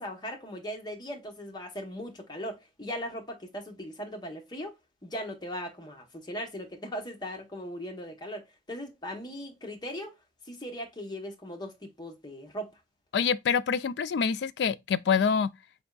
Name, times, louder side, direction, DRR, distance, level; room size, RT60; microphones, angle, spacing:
voice 1, 0.0-4.7 5.0-10.1 10.5-12.7, equal, 25° left, 0.9 m, -39 dB
voice 2, 13.1-15.5, left 6 dB, 65° left, 0.3 m, -26 dB
5.1 x 3.5 x 2.3 m
head